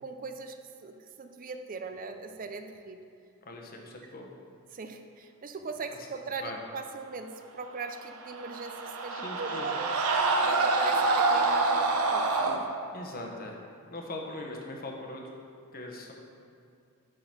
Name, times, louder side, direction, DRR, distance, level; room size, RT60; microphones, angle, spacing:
voice 1, 0.0-3.0 4.7-10.0 10.4-12.5, right 4 dB, 40° right, 7 dB, 0.5 m, -40 dB
voice 2, 3.4-4.3 6.0-6.1 6.4-6.6 9.1-9.7 12.9-13.6 13.9-15.2 15.7-16.1, left 2 dB, 45° left, 1 dB, 1.0 m, -40 dB
sound 1, 8.1-12.6, right 3 dB, 80° right, 0.8 m, -26 dB
9.2 x 3.8 x 6.0 m, 2.4 s
head